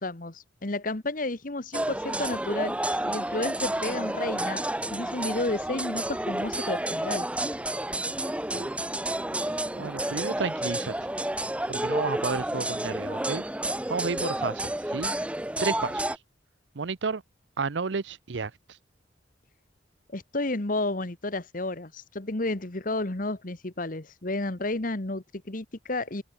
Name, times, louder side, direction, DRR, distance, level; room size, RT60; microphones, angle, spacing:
voice 1, 0.0-4.6 4.9-7.3 20.1-26.2, left 2 dB, 50° left, 1.5 m, -32 dB
sound 1, 1.7-16.2, right 1 dB, 5° right, 1.1 m, -30 dB
voice 2, 9.7-10.9 11.7-13.4 13.9-15.1 15.6-16.0 16.7-17.2 17.6-18.5, right 4 dB, 85° right, 0.7 m, -31 dB
head